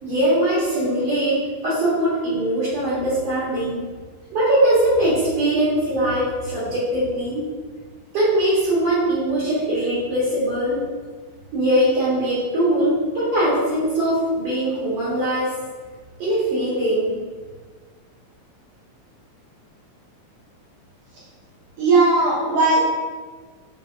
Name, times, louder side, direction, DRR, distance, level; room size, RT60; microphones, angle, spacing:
voice 1, 0.0-3.8 4.3-7.5 8.1-10.8 11.5-15.5 16.2-17.2, right 1 dB, 60° right, -10 dB, 2.0 m, -21 dB
voice 2, 21.8-22.9, right 3 dB, 85° right, -7 dB, 1.3 m, -17 dB
5.2 x 3.8 x 2.5 m, 1.4 s
omnidirectional pair, 3.6 m